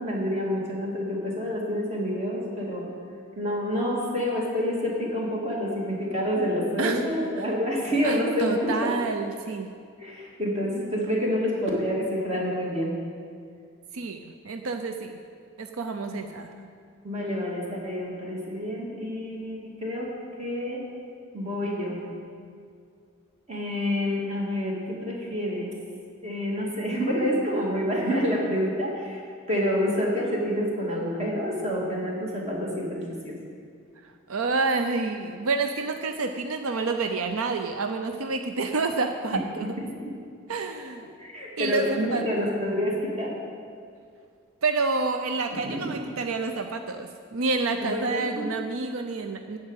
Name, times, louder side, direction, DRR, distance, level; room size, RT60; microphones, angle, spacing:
voice 1, 0.0-2.9 3.4-8.9 10.0-12.9 16.1-16.2 17.0-20.1 20.4-20.8 21.3-22.0 23.5-25.7 26.2-29.2 29.5-33.4 39.3-39.4 39.8-40.1 41.2-43.3 45.6-45.9 47.8-48.5, equal, 30° right, -3 dB, 2.5 m, -28 dB
voice 2, 8.0-9.7 13.9-15.2 15.6-16.5 34.3-39.8 40.5-41.0 41.6-42.2 44.6-49.6, right 3 dB, 85° right, 6 dB, 0.6 m, -28 dB
13.5 x 4.9 x 9.0 m, 2.2 s
head